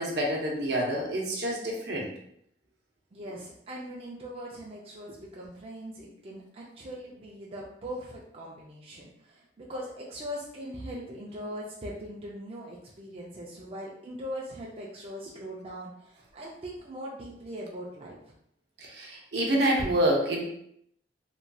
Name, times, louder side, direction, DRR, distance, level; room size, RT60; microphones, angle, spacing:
voice 1, 0.0-2.1 18.8-20.5, right 1 dB, 65° right, -1 dB, 0.7 m, -27 dB
voice 2, 3.1-18.3, equal, 35° right, -4 dB, 0.4 m, -40 dB
3.0 x 2.7 x 2.2 m, 0.72 s
head